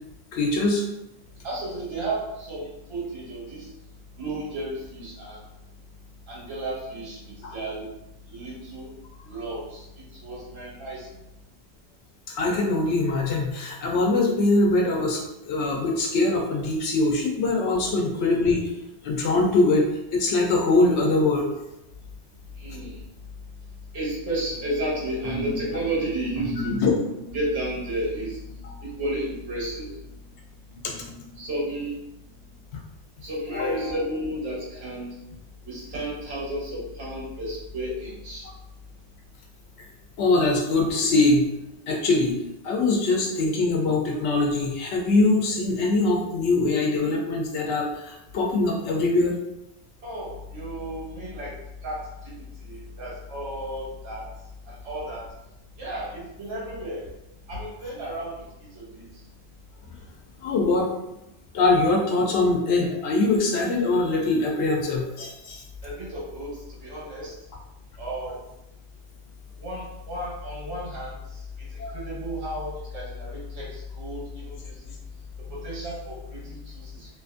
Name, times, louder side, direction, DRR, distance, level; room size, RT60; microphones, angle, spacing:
voice 1, 0.3-0.8 7.4-7.5 12.3-18.6 19.0-19.8 20.1-21.5 26.7-26.9 28.6-28.7 33.5-34.0 40.2-41.5 41.9-42.4 42.6-49.3 60.4-60.9 61.5-65.6 71.8-72.0, left 2 dB, 85° left, -1 dB, 0.9 m, -22 dB
voice 2, 1.4-3.6 4.2-5.4 6.3-7.2 7.5-7.9 8.3-8.9 9.3-9.8 10.2-11.1 22.6-22.9 23.9-26.8 27.3-28.4 29.0-29.9 31.4-31.9 33.2-35.1 35.7-38.4 50.0-51.5 51.8-52.0 52.6-54.2 54.8-55.2 55.8-57.0 57.5-58.3 58.9-59.0 65.8-66.5 66.8-67.3 68.0-68.4 69.6-71.2 71.9-74.7 75.5-77.1, right 1 dB, 70° right, -6 dB, 1.2 m, -32 dB
sound 1, 24.5-30.3 30.8-31.9 32.4-32.5, equal, 55° left, 0.4 m, -38 dB
2.7 x 2.4 x 2.4 m, 0.90 s
omnidirectional pair, 1.1 m